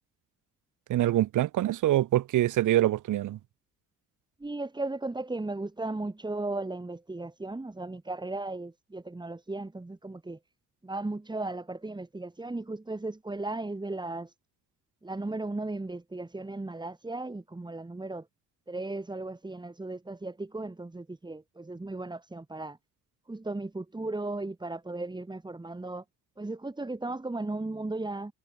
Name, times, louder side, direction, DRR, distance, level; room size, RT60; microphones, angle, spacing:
voice 1, 0.9-3.4, right 14 dB, 80° right, 5.0 m, -25 dB
voice 2, 4.4-10.4 10.8-14.3 15.0-18.3 18.7-22.8 23.3-26.0 26.4-28.3, right 2 dB, 15° right, 2.9 m, -36 dB
cardioid pair, 90°, 30 cm